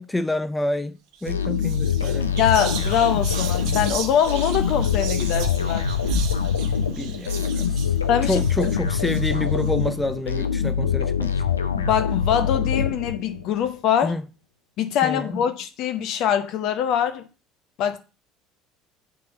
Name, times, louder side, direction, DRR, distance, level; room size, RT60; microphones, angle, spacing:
voice 1, 0.0-2.3 7.0-7.9 8.3-11.3 14.0-14.2 15.0-15.4, left 2 dB, 10° left, 0.5 m, -28 dB
Whispering, 1.1-1.3 1.6-9.7, right 4 dB, 55° right, 1.1 m, -34 dB
sound 1, 1.3-13.5, left 7 dB, 80° left, 0.6 m, -24 dB
voice 2, 2.4-5.9 8.1-8.7 11.8-14.2 14.8-17.3 17.8-18.0, left 9 dB, 50° left, 0.9 m, -23 dB
6.4 x 3.5 x 6.1 m
figure-of-eight pair, 60°, 0 cm